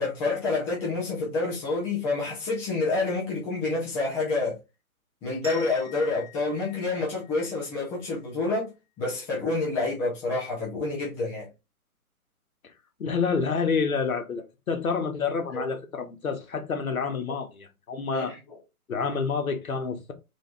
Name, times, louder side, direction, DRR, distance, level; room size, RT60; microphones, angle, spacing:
voice 1, 0.0-4.6 5.2-8.7 9.0-11.5 15.5-15.6 18.1-18.4, left 3 dB, 5° left, 0.5 m, -28 dB
sound 1, 5.4-8.2, left 4 dB, 10° right, 1.1 m, -46 dB
voice 2, 13.0-18.3 18.9-20.1, left 5 dB, 70° left, 1.4 m, -28 dB
3.9 x 3.1 x 3.6 m
figure-of-eight pair, 130°, 44 cm